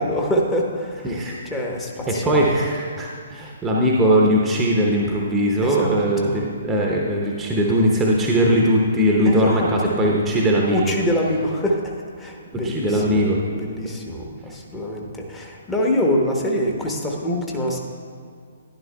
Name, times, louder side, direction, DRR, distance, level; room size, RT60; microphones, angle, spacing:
voice 1, 0.0-1.2 1.5-2.5 5.6-6.4 9.2-9.7 10.7-11.8 12.2-13.2 13.6-17.8, equal, 10° left, 0 dB, 1.0 m, -25 dB
voice 2, 1.0-1.4 2.1-10.9 12.5-13.4, equal, 10° right, -2 dB, 0.8 m, -20 dB
11.5 x 10.5 x 2.2 m, 2.1 s
figure-of-eight pair, 125°, 0 cm